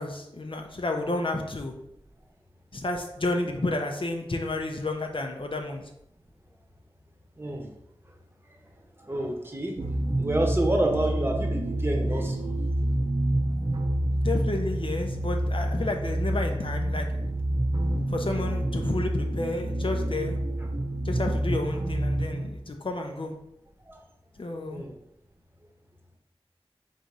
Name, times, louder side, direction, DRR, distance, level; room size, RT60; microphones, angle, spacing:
voice 1, 0.0-1.7 2.7-5.8 14.2-17.1 18.1-20.4 21.0-23.3 24.4-24.8, left 2 dB, 60° left, 3 dB, 0.6 m, -31 dB
voice 2, 7.4-7.7 9.0-12.5 17.9-18.0 23.9-24.0 24.7-25.0, right 1 dB, 25° right, 1 dB, 0.9 m, -29 dB
sound 1, 9.8-22.5, right 1 dB, 45° right, 0.5 m, -28 dB
4.0 x 2.7 x 4.7 m, 0.78 s
wide cardioid pair, 65°, 10 cm